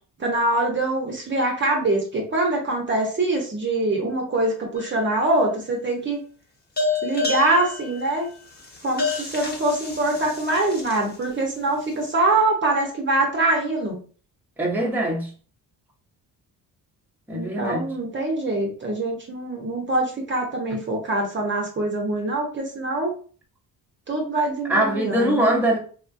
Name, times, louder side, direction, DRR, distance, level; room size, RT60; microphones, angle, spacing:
voice 1, 0.2-6.2 7.0-8.3 8.8-14.0 17.3-23.1 24.1-25.4, right 2 dB, 30° right, 0.8 m, -24 dB
sound 1, 4.8-5.4 6.8-11.2, left 3 dB, 25° left, 1.0 m, -29 dB
voice 2, 14.6-15.3 17.3-17.9 24.7-25.8, right 1 dB, 5° right, 0.8 m, -22 dB
3.6 x 2.3 x 2.5 m
cardioid pair, 105°, 36 cm